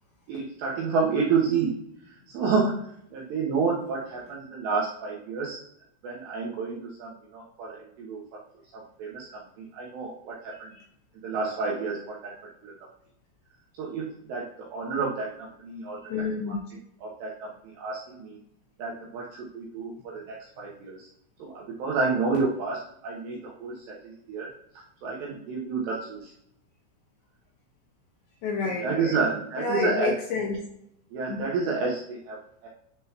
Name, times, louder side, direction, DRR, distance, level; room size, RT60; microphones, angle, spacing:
voice 1, 0.3-1.7 2.1-5.6 6.0-8.4 8.7-10.8 11.2-12.3 12.6-12.7 13.7-16.0 17.0-18.4 18.8-21.1 21.4-24.5 25.0-26.3 28.8-30.1 31.1-32.7, right 4 dB, 80° right, -4 dB, 2.5 m, -30 dB
voice 2, 16.0-16.6 28.4-29.2 29.6-30.6 31.3-31.4, left 4 dB, 80° left, -2 dB, 2.7 m, -29 dB
10.5 x 3.8 x 2.8 m, 0.73 s
omnidirectional pair, 6.0 m